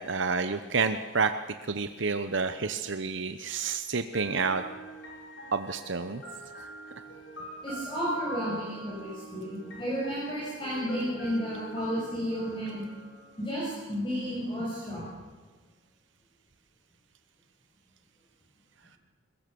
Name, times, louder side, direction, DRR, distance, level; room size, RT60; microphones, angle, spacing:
voice 1, 0.0-1.3 1.7-4.6 5.5-6.2 6.6-6.7 11.0-11.1, right 4 dB, 60° right, 9 dB, 0.9 m, -29 dB
sound 1, 4.1-13.9, right 2 dB, 60° left, 6.6 m, -45 dB
voice 2, 7.6-12.8 13.4-15.0, equal, 25° left, -7 dB, 7.0 m, -32 dB
22.5 x 20.5 x 7.0 m, 1.5 s
head